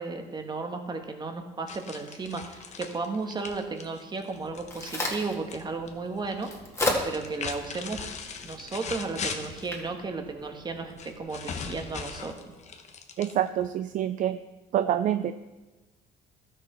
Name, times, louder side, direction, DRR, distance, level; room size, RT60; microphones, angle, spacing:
voice 1, 0.0-6.5 7.0-8.0 8.4-12.4, right 3 dB, 25° right, 5 dB, 1.3 m, -34 dB
sound 1, 1.7-5.6 5.9-6.5 7.0-9.7 11.0-13.7, left 5 dB, 40° left, 0.9 m, -39 dB
Crack, 4.3-11.2, left 1 dB, 15° left, 1.9 m, -36 dB
voice 2, 13.2-14.4 14.7-15.3, right 11 dB, 50° right, 11 dB, 0.4 m, -26 dB
12.5 x 6.6 x 4.4 m, 1.1 s
cardioid pair, 110°, 17 cm